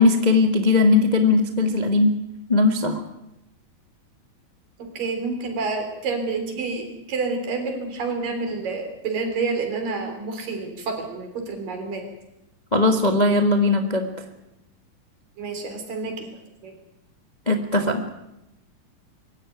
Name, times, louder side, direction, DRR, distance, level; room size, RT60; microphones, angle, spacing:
voice 1, 0.0-2.2 2.5-3.0 12.7-14.1 17.5-18.0, left 3 dB, 25° left, 5 dB, 0.9 m, -19 dB
voice 2, 4.8-12.0 15.4-16.3 16.6-16.7, right 4 dB, 75° right, 5 dB, 5.4 m, -28 dB
24.5 x 15.0 x 9.2 m, 0.90 s
omnidirectional pair, 3.9 m